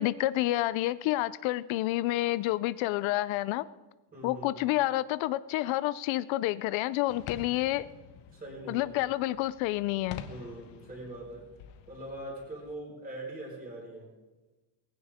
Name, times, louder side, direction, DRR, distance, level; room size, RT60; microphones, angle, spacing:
voice 1, 0.0-3.6 4.2-7.9 8.7-10.2, left 16 dB, 80° left, 16 dB, 0.6 m, -29 dB
voice 2, 4.1-4.6 8.3-8.9 10.3-11.5 11.9-14.1, right 1 dB, 20° right, -2 dB, 5.0 m, -42 dB
sound 1, 7.1-12.8, left 8 dB, 65° left, 1.2 m, -48 dB
19.5 x 16.5 x 3.6 m, 1.2 s
cardioid pair, 175°, 46 cm